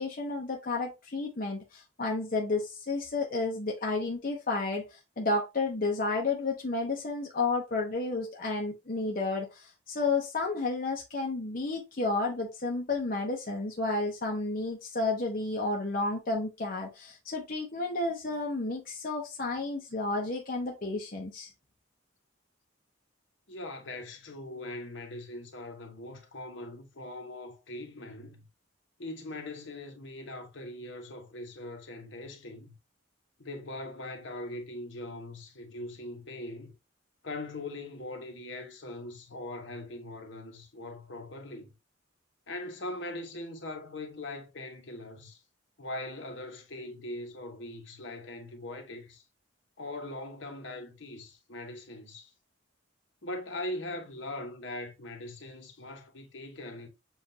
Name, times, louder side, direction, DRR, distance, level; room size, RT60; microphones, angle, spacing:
voice 1, 0.0-21.5, left 3 dB, 45° left, 0.7 m, -31 dB
voice 2, 23.5-28.5 29.0-32.7 33.4-36.7 37.2-41.7 42.5-45.4 45.8-49.2 49.8-52.3 53.2-56.9, left 1 dB, 65° left, 1.0 m, -41 dB
7.1 x 2.5 x 2.7 m
head